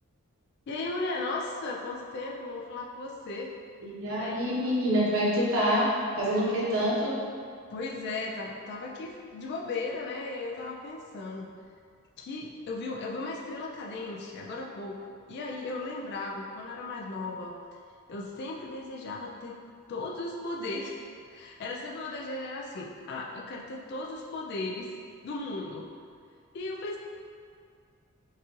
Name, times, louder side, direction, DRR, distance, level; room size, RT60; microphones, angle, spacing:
voice 1, 0.7-3.6 4.2-4.5 7.7-11.5 12.2-17.5 18.1-19.6 19.9-25.0 25.2-25.9 26.5-27.0, left 2 dB, 50° left, -1 dB, 0.3 m, -36 dB
voice 2, 3.8-5.8 6.2-7.1, equal, 70° right, -7 dB, 1.0 m, -26 dB
4.5 x 2.4 x 3.0 m, 2.2 s
head